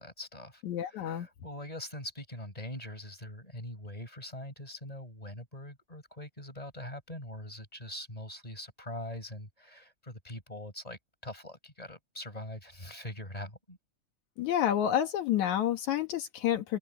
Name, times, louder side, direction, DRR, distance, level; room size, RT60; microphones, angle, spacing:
voice 1, 0.0-13.8, left 1 dB, 10° left, 6.8 m, -43 dB
voice 2, 0.7-1.3 14.4-16.8, left 10 dB, 80° left, 2.8 m, -29 dB
open air
omnidirectional pair, 3.3 m